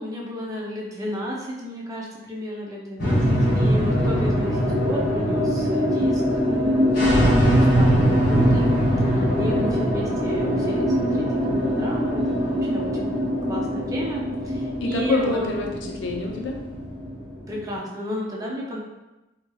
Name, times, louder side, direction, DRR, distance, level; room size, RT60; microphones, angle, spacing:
voice 1, 0.0-4.5 4.8-6.1 6.5-7.3 7.7-8.5 9.4-10.8 11.2-14.2 14.8-15.6 17.5-18.8, equal, 20° right, -3 dB, 0.5 m, -32 dB
sound 1, 3.0-17.6, equal, 55° left, 1.0 m, -22 dB
voice 2, 3.7-4.2 9.1-9.7 14.8-16.6, left 2 dB, 90° left, 2 dB, 0.5 m, -28 dB
2.8 x 2.7 x 2.3 m, 1.0 s
head